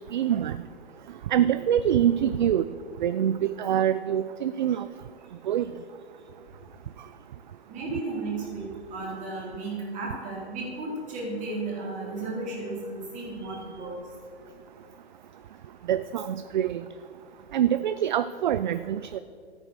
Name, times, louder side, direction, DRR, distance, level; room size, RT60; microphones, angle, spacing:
voice 1, 0.1-0.6 1.3-2.6 3.0-4.9 5.5-5.7 15.9-16.8 17.5-19.2, right 10 dB, 45° right, 14 dB, 0.4 m, -25 dB
voice 2, 7.7-13.9, right 3 dB, 20° right, -4 dB, 3.9 m, -34 dB
13.5 x 9.1 x 6.5 m, 2.2 s
hypercardioid pair, 140°, 34 cm